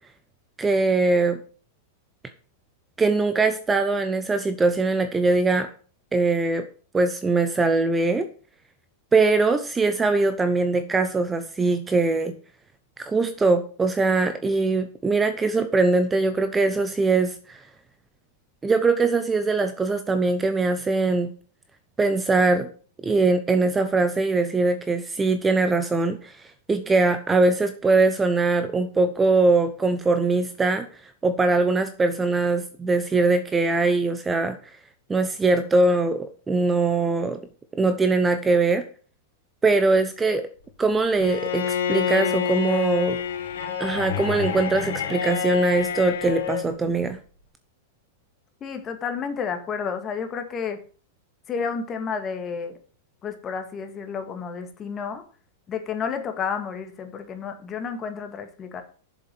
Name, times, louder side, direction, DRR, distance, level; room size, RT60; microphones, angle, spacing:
voice 1, 0.6-1.4 3.0-5.7 6.1-6.7 6.9-8.3 9.1-12.4 13.0-17.6 18.6-21.3 22.0-22.7 23.0-26.3 26.7-30.9 31.2-34.6 35.1-37.4 37.7-38.8 39.6-40.5 40.8-43.2 43.8-47.2, right 3 dB, 15° right, 9 dB, 0.9 m, -22 dB
Bowed string instrument, 41.2-46.7, left 8 dB, 85° left, 2.9 m, -27 dB
voice 2, 48.6-50.8 51.5-52.8 53.2-55.2 55.7-58.8, left 6 dB, 25° left, 6 dB, 1.9 m, -31 dB
7.3 x 7.3 x 7.6 m, 0.41 s
hypercardioid pair, 130°, 0 cm